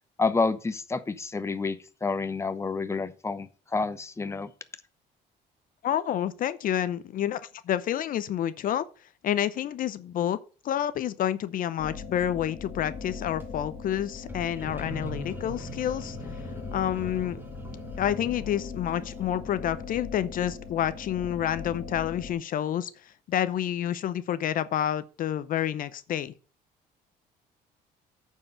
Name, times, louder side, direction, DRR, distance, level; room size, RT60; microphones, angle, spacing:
voice 1, 0.2-4.5, left 4 dB, 15° left, 0.8 m, -29 dB
voice 2, 5.8-7.4 7.7-8.9 9.2-10.4 10.6-16.2 16.7-17.4 18.0-26.3, left 10 dB, 55° left, 0.6 m, -29 dB
sound 1, 11.8-22.3, left 5 dB, 35° left, 2.2 m, -40 dB
sound 2, 13.1-13.5 14.2-19.2, right 1 dB, 10° right, 2.5 m, -42 dB
8.6 x 4.7 x 6.7 m
cardioid pair, 110°, 17 cm